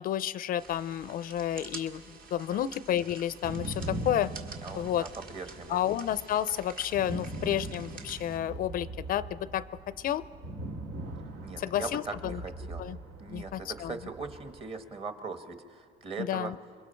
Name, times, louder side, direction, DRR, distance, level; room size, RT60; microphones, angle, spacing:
voice 1, 0.0-4.3 4.7-5.1 5.7-9.7 10.0-10.2 11.6-12.4 12.8-13.0 13.3-13.9 16.2-16.6, left 11 dB, 60° left, 16 dB, 0.5 m, -31 dB
sound 1, 0.6-8.4, right 5 dB, 55° right, 1.9 m, -49 dB
sound 2, 3.3-14.7, right 1 dB, 85° right, 1.8 m, -41 dB
voice 2, 4.6-5.8 11.4-12.8 13.2-16.5, right 4 dB, 35° right, 7 dB, 1.5 m, -40 dB
27.0 x 22.5 x 4.4 m, 2.1 s
cardioid pair, 110°, 17 cm